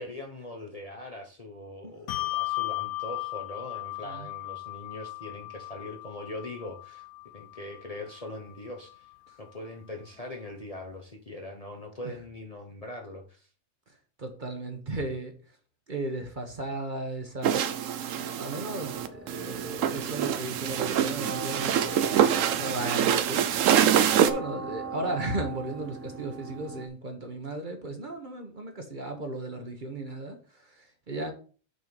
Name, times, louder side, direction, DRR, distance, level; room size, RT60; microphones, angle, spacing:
voice 1, 0.0-7.1 7.3-9.1 9.4-13.5, left 1 dB, 30° left, 0.9 m, -41 dB
Bell, 2.1-8.9, left 21 dB, 70° left, 0.9 m, -36 dB
voice 2, 14.2-15.3 15.9-17.6 18.1-22.0 22.6-23.5 24.2-31.3, right 2 dB, 40° right, 1.2 m, -35 dB
sound 1, 17.4-24.3, right 9 dB, 70° right, 1.0 m, -25 dB
sound 2, 18.8-26.9, right 4 dB, 25° right, 0.3 m, -40 dB
6.5 x 4.5 x 5.3 m
omnidirectional pair, 1.4 m